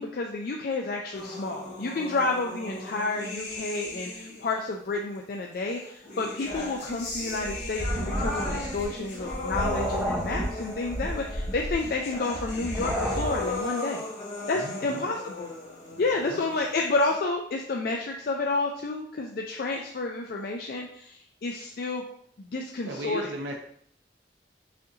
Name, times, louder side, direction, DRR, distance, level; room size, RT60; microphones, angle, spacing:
voice 1, 0.0-14.0 14.5-15.5 16.0-22.0 22.4-23.2, left 3 dB, 55° left, 1 dB, 0.4 m, -30 dB
sound 1, 1.1-4.6 5.6-17.2, left 2 dB, 70° left, 1.9 m, -37 dB
sound 2, 6.5-13.6, equal, 15° right, 0.7 m, -32 dB
voice 2, 14.5-15.1 15.9-16.7 22.8-23.6, right 2 dB, 80° right, 2 dB, 0.6 m, -38 dB
6.3 x 2.6 x 2.7 m, 0.65 s
head